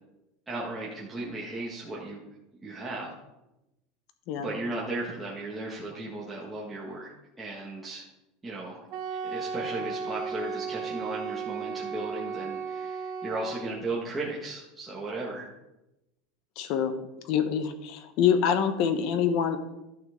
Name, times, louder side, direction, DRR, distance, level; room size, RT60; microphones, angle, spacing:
voice 1, 0.5-2.2 2.6-3.1 4.4-7.1 7.4-8.0 8.4-8.8 9.2-15.5, right 2 dB, 10° right, -6 dB, 1.7 m, -35 dB
Wind instrument woodwind instrument, 8.9-13.8, right 6 dB, 55° right, 1.0 m, -35 dB
voice 2, 16.6-17.0 17.3-19.6, left 8 dB, 60° left, 10 dB, 1.0 m, -25 dB
13.0 x 6.2 x 3.8 m, 0.93 s
supercardioid pair, 135°, 0 cm